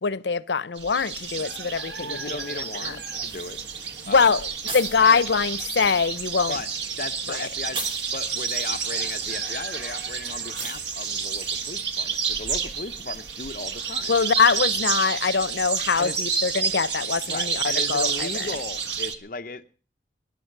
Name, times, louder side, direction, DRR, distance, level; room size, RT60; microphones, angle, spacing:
voice 1, 0.0-3.0 4.1-6.6 7.3-7.5 14.1-18.5, left 5 dB, 85° left, 0.7 m, -23 dB
sound 1, 0.8-19.2, right 6 dB, 90° right, 1.6 m, -30 dB
voice 2, 2.0-3.6 4.1-4.4 5.0-5.2 6.5-6.7 7.0-7.8 8.1-14.1 16.0-16.2 17.3-19.7, left 3 dB, 50° left, 0.7 m, -36 dB
sound 2, 3.2-11.9, right 1 dB, 30° right, 3.3 m, -43 dB
19.0 x 10.5 x 6.6 m
head